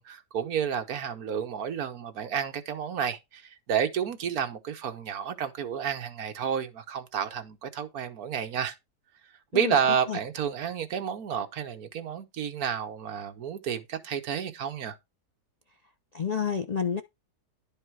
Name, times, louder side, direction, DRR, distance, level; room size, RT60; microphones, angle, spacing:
voice 1, 0.0-8.8 9.5-15.0, right 8 dB, 70° right, 1.5 m, -30 dB
voice 2, 16.1-17.0, left 6 dB, 60° left, 0.4 m, -29 dB
11.0 x 5.2 x 4.6 m
omnidirectional pair, 1.7 m